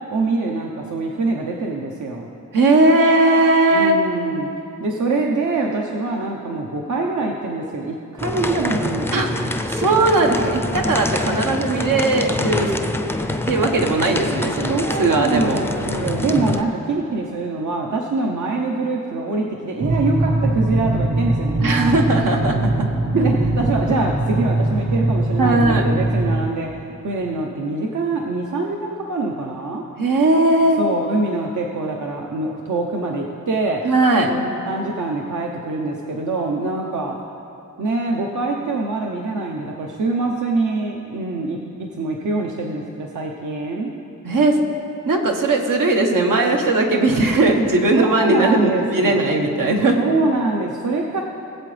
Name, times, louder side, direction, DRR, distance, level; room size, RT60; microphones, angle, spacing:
voice 1, 0.1-2.3 3.7-4.5 4.8-9.6 14.7-22.0 23.1-26.7 27.0-29.8 30.8-33.8 34.3-37.2 37.8-41.6 41.9-43.9 48.0-49.3 49.9-51.2, right 3 dB, 65° right, 0 dB, 0.8 m, -24 dB
voice 2, 2.5-3.9 9.1-9.3 9.7-12.7 13.5-15.6 21.6-22.9 25.4-25.9 30.0-30.8 33.8-34.3 44.2-44.6 45.1-50.0, right 2 dB, 80° right, 2 dB, 1.2 m, -18 dB
sound 1, 8.2-16.6, left 1 dB, 10° left, 0.5 m, -25 dB
sound 2, 19.8-26.5, right 2 dB, 45° right, 1.2 m, -21 dB
20.5 x 7.8 x 3.3 m, 2.7 s
wide cardioid pair, 140°, 32 cm